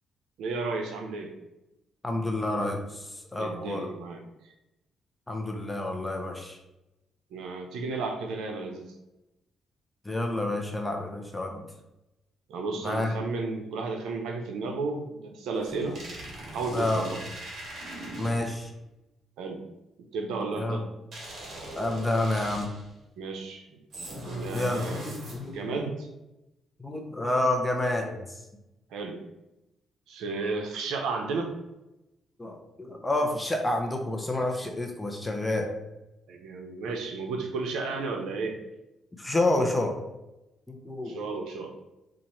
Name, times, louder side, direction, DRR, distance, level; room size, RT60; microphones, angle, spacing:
voice 1, 0.4-1.3 3.4-4.5 7.3-8.9 12.5-16.0 16.5-17.2 19.4-19.6 20.1-20.9 23.2-23.8 24.2-25.0 25.5-26.1 28.9-29.2 30.1-31.5 36.3-38.6 41.0-41.7, right 3 dB, 85° right, 3 dB, 0.6 m, -33 dB
voice 2, 2.0-3.9 5.3-6.6 10.0-11.7 12.8-13.1 15.7-16.0 16.7-17.1 18.2-18.7 20.5-20.8 21.8-22.7 24.5-25.9 26.8-28.4 32.4-35.7 39.2-40.0 40.7-41.2, left 2 dB, 15° left, 2 dB, 0.7 m, -29 dB
sound 1, 15.6-18.7 21.1-22.9 23.9-25.7, right 1 dB, 55° right, 1.4 m, -40 dB
4.4 x 2.5 x 4.2 m, 0.94 s
cardioid pair, 90°, 0 cm